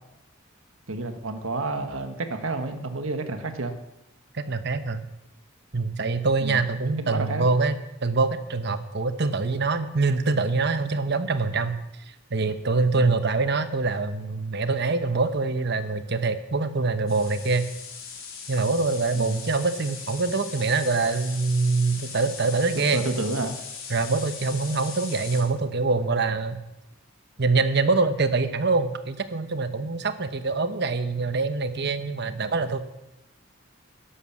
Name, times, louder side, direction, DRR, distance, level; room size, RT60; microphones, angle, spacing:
voice 1, 0.9-3.7 6.4-6.6 7.0-7.5 12.9-13.2 19.1-19.4 22.7-23.6, right 2 dB, 75° right, 7 dB, 1.4 m, -30 dB
voice 2, 4.3-5.1 5.7-7.7 8.0-11.8 12.3-17.7 18.5-23.0 23.9-26.6 27.4-32.8, right 3 dB, 55° right, 10 dB, 1.0 m, -24 dB
sound 1, 17.1-25.4, left 6 dB, 85° left, 3.4 m, -39 dB
11.5 x 11.5 x 7.2 m, 0.92 s
head